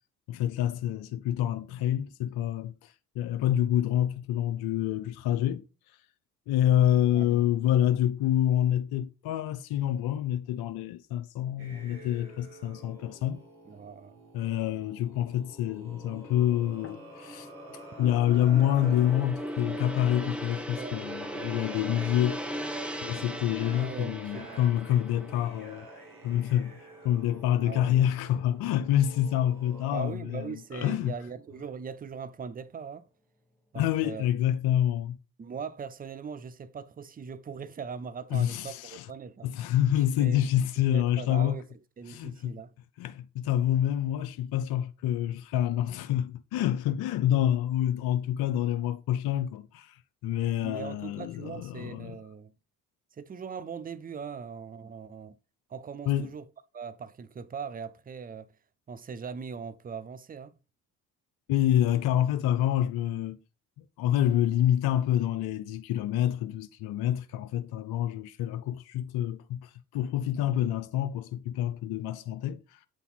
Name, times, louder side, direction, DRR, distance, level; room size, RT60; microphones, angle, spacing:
voice 1, 0.3-6.0 6.5-13.4 14.3-22.4 23.0-25.9 26.2-31.1 33.8-35.2 38.3-39.1 39.4-41.6 42.1-42.5 43.0-52.2 56.1-56.3 61.5-63.4 63.8-72.9, left 11 dB, 60° left, 0.6 m, -27 dB
sound 1, 11.6-19.1 20.0-20.2 20.9-30.0, right 2 dB, 55° right, 2.4 m, -50 dB
voice 2, 13.7-14.3 20.8-21.0 23.7-24.6 27.6-28.1 29.9-33.1 33.7-34.3 35.4-39.5 40.0-40.4 40.9-41.6 42.0-42.7 50.6-52.5 53.1-55.4 55.7-56.4 56.7-58.5 58.9-60.5, right 6 dB, 20° right, 0.5 m, -40 dB
Gong, 15.7-28.1 28.4-28.7, equal, 5° right, 1.0 m, -39 dB
sound 2, 16.2-16.3 16.8-17.8 18.3-21.1, left 6 dB, 30° left, 1.1 m, -58 dB
7.9 x 4.1 x 4.1 m
hypercardioid pair, 45°, 43 cm